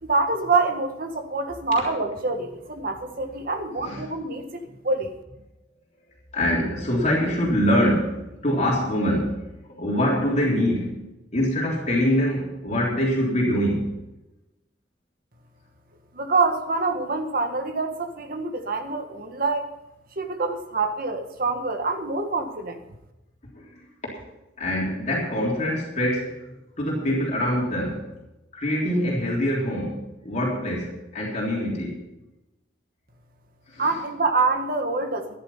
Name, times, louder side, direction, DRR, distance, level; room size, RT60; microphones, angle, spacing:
voice 1, 0.0-5.1 16.1-19.7 20.1-22.8 33.8-35.4, right 3 dB, 50° right, 5 dB, 1.6 m, -26 dB
voice 2, 6.3-9.4 9.7-11.0 11.3-13.9 23.5-23.8 24.6-28.0 28.5-32.0 33.7-33.9, equal, 40° left, -3 dB, 3.5 m, -24 dB
14.0 x 10.5 x 5.7 m, 0.96 s
head